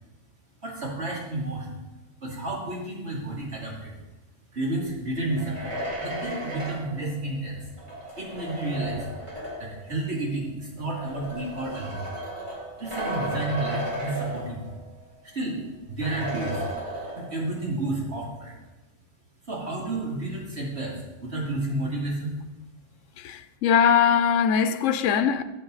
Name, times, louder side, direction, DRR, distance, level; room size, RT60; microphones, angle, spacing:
voice 1, 0.6-1.7 2.2-4.0 4.5-7.6 8.2-9.1 9.6-12.0 12.8-14.7 15.2-15.6 15.9-16.7 17.2-18.5 19.5-22.3, right 2 dB, 60° right, 2.8 m, -31 dB
sound 1, 5.2-9.9 10.8-14.9 15.3-15.4 16.0-17.6, right 1 dB, 25° right, 2.5 m, -35 dB
voice 2, 23.2-25.4, left 8 dB, 85° left, 1.0 m, -21 dB
14.0 x 8.1 x 4.0 m
omnidirectional pair, 1.3 m